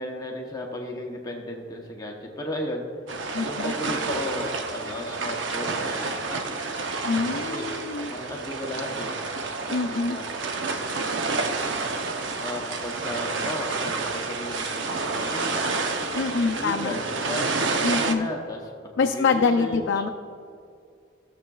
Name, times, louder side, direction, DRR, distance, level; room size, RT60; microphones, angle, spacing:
voice 1, 0.0-2.8 3.4-6.4 7.3-7.7 8.1-9.1 9.9-10.3 11.3-11.8 12.4-15.7 16.4-17.5 17.9-20.0, left 1 dB, 20° left, 0 dB, 0.8 m, -35 dB
sound 1, 3.1-18.1, right 3 dB, 85° right, 0.7 m, -29 dB
voice 2, 3.3-3.7 7.0-8.1 9.7-10.2 16.1-16.9 17.8-18.3 19.0-20.1, left 4 dB, 85° left, 2 dB, 0.4 m, -25 dB
15.0 x 6.8 x 2.3 m, 2.3 s
head